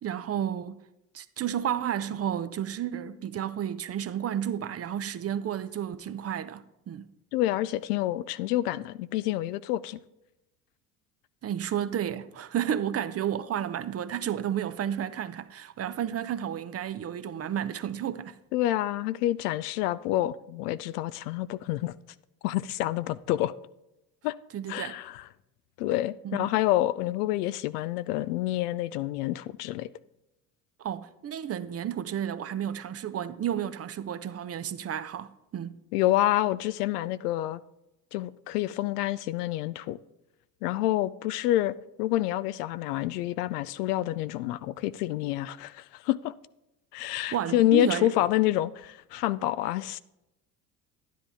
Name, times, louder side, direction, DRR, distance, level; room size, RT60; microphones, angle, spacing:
voice 1, 0.0-0.8 1.1-7.1 11.4-18.4 24.5-25.0 26.2-26.5 30.8-35.8 47.3-48.1, right 9 dB, 30° right, 0.6 m, -32 dB
voice 2, 7.3-10.0 18.5-21.9 22.4-23.5 24.2-24.3 24.7-25.2 25.8-29.9 35.9-37.6 38.1-40.0 40.6-46.3 46.9-50.0, left 14 dB, 80° left, 0.5 m, -28 dB
11.0 x 10.0 x 3.5 m
hypercardioid pair, 70°, 46 cm